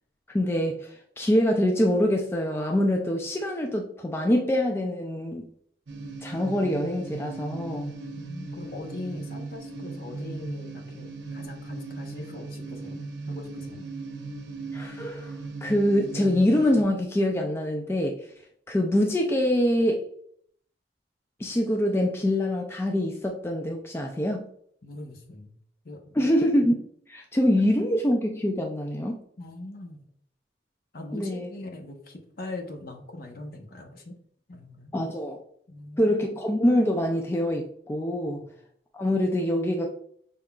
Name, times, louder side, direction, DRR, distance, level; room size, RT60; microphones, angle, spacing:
voice 1, 0.3-5.5 6.2-7.9 14.7-15.3 15.6-18.2 18.7-20.0 21.4-24.4 26.1-29.2 31.1-31.5 34.9-35.4 36.0-38.4 38.9-39.9, left 1 dB, 15° left, 1 dB, 0.3 m, -25 dB
sound 1, 5.9-16.8, right 3 dB, 70° right, 0.7 m, -38 dB
voice 2, 8.1-13.0 13.3-13.9 24.8-25.5 25.8-26.3 29.4-30.0 30.9-34.1 34.5-34.9 35.7-36.2 38.3-38.5, left 2 dB, 50° left, 3 dB, 0.8 m, -41 dB
5.2 x 3.7 x 2.3 m, 0.65 s
head